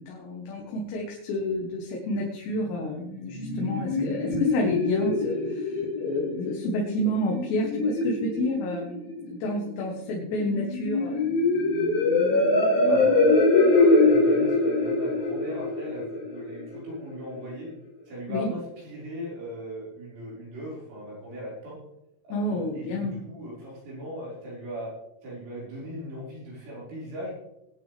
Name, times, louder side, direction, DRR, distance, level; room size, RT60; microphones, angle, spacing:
voice 1, 0.0-11.3 18.3-18.5 22.3-23.2, left 1 dB, 85° left, -1 dB, 3.7 m, -30 dB
sound 1, 3.0-16.9, left 2 dB, 60° left, 4.2 m, -24 dB
voice 2, 12.8-17.7 18.1-21.8 22.2-24.9 25.2-27.3, equal, 85° right, -6 dB, 7.3 m, -39 dB
21.0 x 8.9 x 3.4 m, 0.88 s
omnidirectional pair, 5.0 m